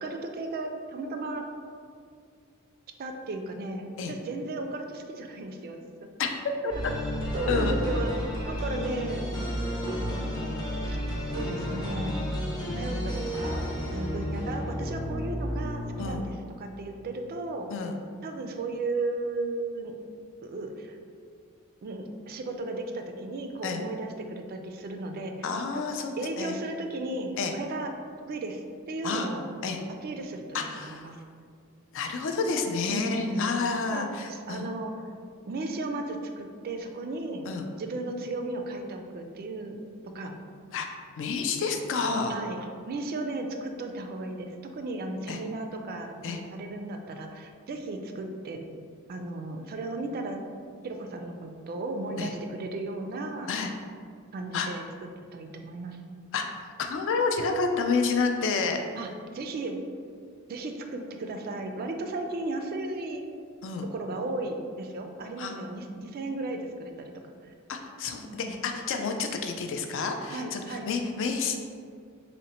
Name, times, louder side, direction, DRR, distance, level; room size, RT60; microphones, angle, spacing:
voice 1, 0.0-1.4 3.0-6.3 7.3-8.1 8.5-9.3 9.9-10.0 10.8-11.0 11.3-12.2 12.8-13.6 13.9-17.7 18.2-19.9 20.4-21.0 21.8-25.3 26.2-27.9 28.3-29.5 30.0-31.2 32.9-33.6 33.9-34.9 35.5-37.5 37.8-40.3 42.3-48.7 49.1-50.4 50.8-53.5 54.3-54.8 55.3-56.0 59.0-59.8 60.5-63.2 63.9-67.1 67.4-67.5 68.1-68.6 70.3-70.9, right 2 dB, 45° right, 4 dB, 0.3 m, -35 dB
sound 1, 6.7-16.5, equal, 20° left, 0.6 m, -32 dB
voice 2, 25.4-26.6 27.4-27.5 29.0-29.3 29.6-29.8 30.5-31.1 31.9-34.7 37.5-37.7 40.7-40.9 41.2-42.4 45.3-45.4 46.2-46.4 52.2-52.3 53.5-53.7 54.5-54.7 56.3-56.5 56.8-58.8 63.6-63.9 65.4-65.5 67.7-71.7, left 4 dB, 60° left, 5 dB, 0.4 m, -29 dB
3.8 x 2.1 x 4.1 m, 2.2 s
head